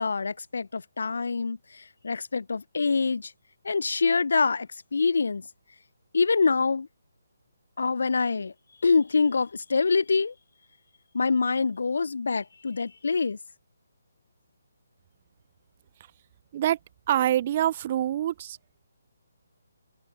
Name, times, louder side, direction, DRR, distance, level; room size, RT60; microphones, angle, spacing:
voice 1, 0.0-3.3 3.6-5.5 6.1-6.9 7.8-8.5 8.8-10.3 11.1-13.4, left 4 dB, 65° left, 0.4 m, -25 dB
voice 2, 17.1-18.6, right 12 dB, 35° right, 0.4 m, -25 dB
figure-of-eight pair, 140°, 0 cm